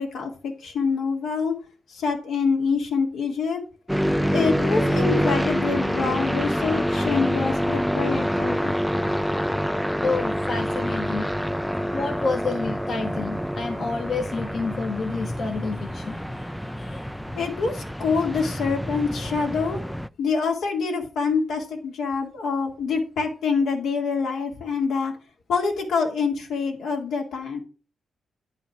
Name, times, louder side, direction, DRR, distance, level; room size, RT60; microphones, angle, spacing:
voice 1, 0.0-1.5 1.9-3.6 4.3-8.9 16.0-16.1 17.3-19.8 20.2-25.1 25.5-27.6, left 5 dB, 85° left, 1 dB, 2.4 m, -26 dB
sound 1, 3.9-20.1, equal, ahead, 0.4 m, -26 dB
voice 2, 10.0-11.3 11.9-17.1, left 4 dB, 55° left, 2 dB, 1.3 m, -29 dB
9.6 x 4.9 x 5.8 m, 0.36 s
cardioid pair, 80°, 0 cm